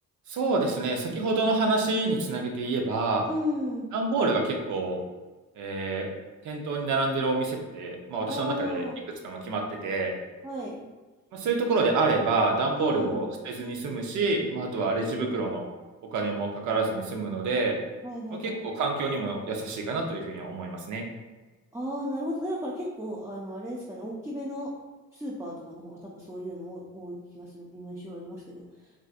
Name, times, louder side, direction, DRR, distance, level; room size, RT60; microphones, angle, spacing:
voice 1, 0.3-3.3 3.9-5.0 5.6-6.1 6.4-8.8 9.2-10.1 11.3-15.7 16.1-17.8 18.4-21.0, right 3 dB, 75° right, 2 dB, 0.7 m, -27 dB
voice 2, 3.3-3.9 8.3-9.0 10.4-10.8 12.7-13.3 18.0-18.6 21.7-24.7 25.1-28.6, left 1 dB, 10° right, -5 dB, 0.5 m, -34 dB
3.5 x 2.5 x 2.4 m, 1.2 s
cardioid pair, 90°, 30 cm